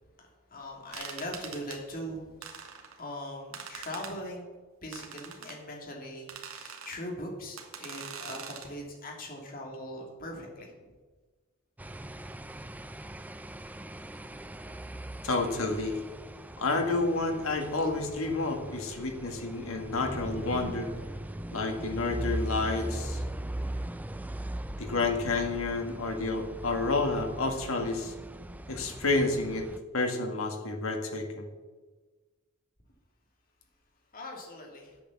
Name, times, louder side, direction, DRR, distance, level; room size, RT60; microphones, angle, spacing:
voice 1, 0.2-2.4 3.0-4.5 4.8-10.9 34.1-35.0, left 1 dB, 40° left, 0 dB, 2.8 m, -41 dB
sound 1, 0.9-1.8 2.4-3.0 3.5-4.1 4.9-5.6 6.3-7.0 7.6-8.7, right 6 dB, 70° right, 1.7 m, -43 dB
sound 2, 11.8-29.8, right 1 dB, 5° right, 0.4 m, -39 dB
voice 2, 15.2-16.0 16.6-20.9 21.5-23.2 24.8-28.1 28.7-29.7 29.9-31.5, left 3 dB, 70° left, 4 dB, 1.8 m, -30 dB
10.0 x 8.4 x 7.2 m, 1.3 s
head